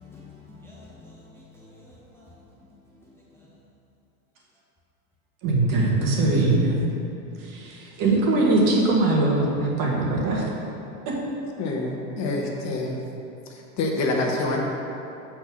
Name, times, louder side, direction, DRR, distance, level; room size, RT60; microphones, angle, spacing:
voice 1, 0.0-2.4 3.0-3.5, left 3 dB, 5° left, -6 dB, 0.9 m, -48 dB
voice 2, 5.4-6.8 7.4-10.4 11.1-11.2, right 2 dB, 50° right, -2 dB, 1.9 m, -21 dB
voice 3, 11.6-13.0 13.5-14.6, left 2 dB, 40° left, 0 dB, 1.2 m, -26 dB
7.9 x 4.4 x 6.2 m, 2.9 s
hypercardioid pair, 110°, 42 cm